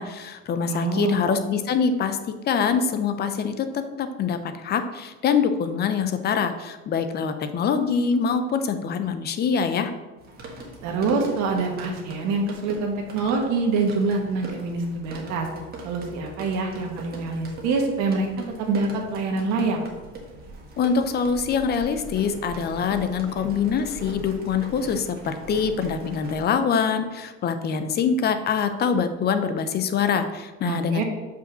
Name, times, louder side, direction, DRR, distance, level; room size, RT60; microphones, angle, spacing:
voice 1, 0.0-2.2 2.5-9.9 20.8-31.0, left 6 dB, 35° left, 9 dB, 0.6 m, -24 dB
voice 2, 0.7-1.1 10.8-15.5 15.8-19.8 30.6-31.0, right 3 dB, 65° right, 2 dB, 1.7 m, -25 dB
sound 1, 10.2-26.4, right 2 dB, 30° right, 1.5 m, -41 dB
5.3 x 5.2 x 6.1 m, 1.2 s
cardioid pair, 150°, 30 cm